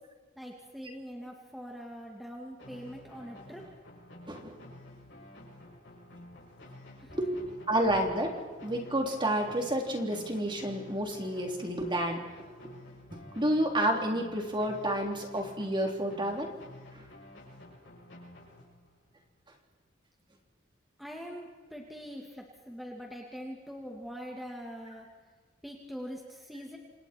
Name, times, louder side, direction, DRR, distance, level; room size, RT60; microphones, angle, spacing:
voice 1, 0.4-3.6 7.0-7.2 21.0-25.1 25.6-26.8, equal, ahead, -1 dB, 2.4 m, -43 dB
sound 1, 2.6-19.1, left 1 dB, 70° left, 7.0 m, -51 dB
voice 2, 4.3-4.6 7.1-12.2 12.6-12.7 13.1-16.5 16.9-17.1, right 1 dB, 25° right, 2 dB, 3.5 m, -30 dB
28.0 x 27.5 x 4.6 m, 1.3 s
head